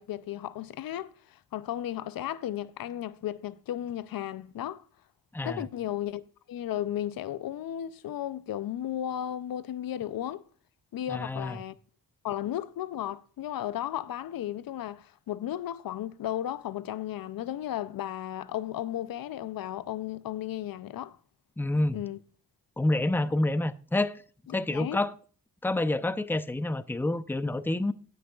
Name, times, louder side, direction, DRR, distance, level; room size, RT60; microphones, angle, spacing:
voice 1, 0.0-4.8 5.4-6.2 6.5-10.4 10.9-11.8 12.2-21.2 21.9-22.2 24.7-25.0, left 11 dB, 75° left, 0.5 m, -34 dB
voice 2, 5.3-5.6 11.1-11.6 21.6-22.0 22.8-24.2 24.5-25.1 25.6-27.9, left 2 dB, 5° left, 0.6 m, -28 dB
18.0 x 6.3 x 2.3 m
cardioid pair, 50°, 35 cm